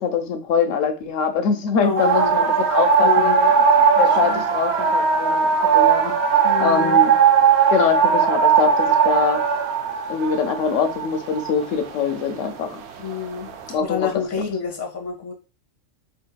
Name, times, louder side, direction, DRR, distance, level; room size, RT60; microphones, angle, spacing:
voice 1, 0.0-3.3 4.0-5.5 5.7-6.3 6.6-7.2 7.7-9.4 10.1-12.8 13.7-14.1, left 6 dB, 85° left, 1.0 m, -23 dB
voice 2, 1.8-2.3 3.0-4.4 6.4-7.0 13.0-13.5 13.8-15.3, left 6 dB, 15° left, 0.8 m, -28 dB
sound 1, 2.0-12.5 13.1-13.7, right 6 dB, 65° right, 0.8 m, -18 dB
4.8 x 2.7 x 2.2 m
omnidirectional pair, 1.3 m